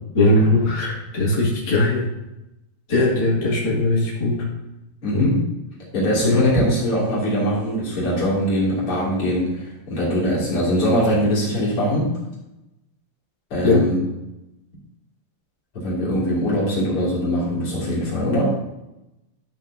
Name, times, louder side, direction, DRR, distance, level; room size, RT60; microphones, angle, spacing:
voice 1, 0.1-2.0 2.9-4.5 5.1-5.2 6.2-6.5 13.6-13.8, left 2 dB, 55° left, -6 dB, 1.1 m, -19 dB
voice 2, 5.0-5.4 5.9-12.1 13.5-14.0 15.7-18.6, equal, 40° left, -6 dB, 2.6 m, -21 dB
12.0 x 5.8 x 2.6 m, 0.94 s
omnidirectional pair, 5.2 m